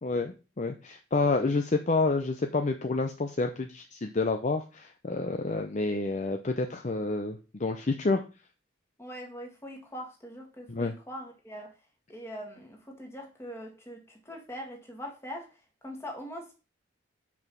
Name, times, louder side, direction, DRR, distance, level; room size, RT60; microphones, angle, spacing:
voice 1, 0.0-8.2 10.7-10.9, left 3 dB, 40° left, 5 dB, 0.6 m, -29 dB
voice 2, 9.0-11.7 12.1-15.5 15.8-16.5, equal, 15° left, 1 dB, 1.8 m, -42 dB
5.4 x 4.8 x 6.0 m, 0.32 s
head